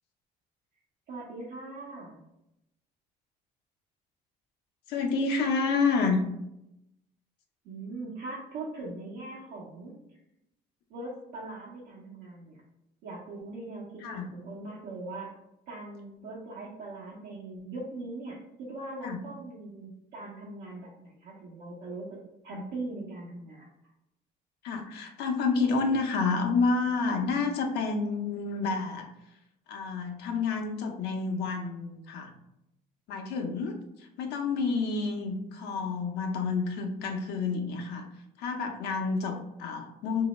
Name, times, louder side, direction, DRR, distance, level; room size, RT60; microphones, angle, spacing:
voice 1, 1.1-2.2 7.6-9.9 10.9-12.6 13.0-15.3 15.7-18.4 18.7-22.2 22.4-23.7, right 2 dB, 85° right, -6 dB, 0.9 m, -41 dB
voice 2, 4.9-6.2 14.0-14.3 19.0-19.2 22.5-22.6 24.6-29.1 29.7-32.3 33.1-38.1 38.4-40.3, left 4 dB, 80° left, 3 dB, 0.7 m, -29 dB
3.0 x 2.7 x 4.1 m, 0.85 s
cardioid pair, 110°, 17 cm